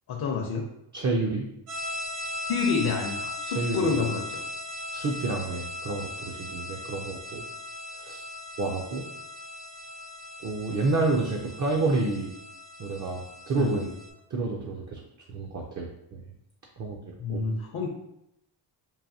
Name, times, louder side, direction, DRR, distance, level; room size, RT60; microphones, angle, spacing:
voice 1, 0.1-0.7 2.5-4.4 13.6-13.9 17.2-17.9, left 5 dB, 50° left, 1 dB, 0.6 m, -28 dB
voice 2, 0.9-1.5 3.5-3.9 4.9-7.4 7.9-8.3 8.6-9.0 10.4-12.3 12.8-13.9 14.3-15.0 15.3-16.2 16.8-17.0 17.3-17.4, right 3 dB, 40° right, 1 dB, 0.5 m, -29 dB
sound 1, 1.7-14.1, left 1 dB, 80° right, 1.3 m, -38 dB
4.7 x 2.5 x 2.7 m, 0.81 s
wide cardioid pair, 145°, 48 cm